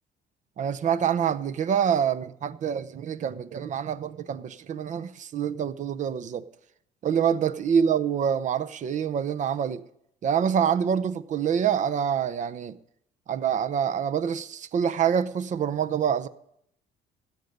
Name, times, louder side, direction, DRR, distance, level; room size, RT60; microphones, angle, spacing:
voice 1, 0.6-6.4 7.0-9.8 10.2-12.8 13.3-16.3, right 8 dB, 45° right, 0.7 m, -26 dB
16.0 x 5.3 x 9.8 m
cardioid pair, 110°, 17 cm